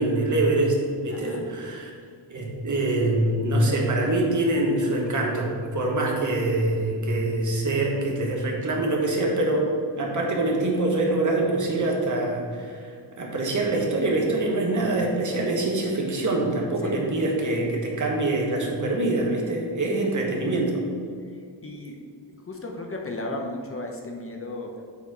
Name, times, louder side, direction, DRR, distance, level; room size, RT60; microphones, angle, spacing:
voice 1, 0.0-1.9 2.3-12.9 13.2-20.7, right 2 dB, 40° right, -1 dB, 1.2 m, -24 dB
voice 2, 1.1-1.5 16.8-17.1 20.1-20.4 21.3-22.0 22.3-24.7, left 2 dB, 30° left, 1 dB, 0.7 m, -35 dB
7.1 x 4.2 x 4.8 m, 2.2 s
wide cardioid pair, 150°, 45 cm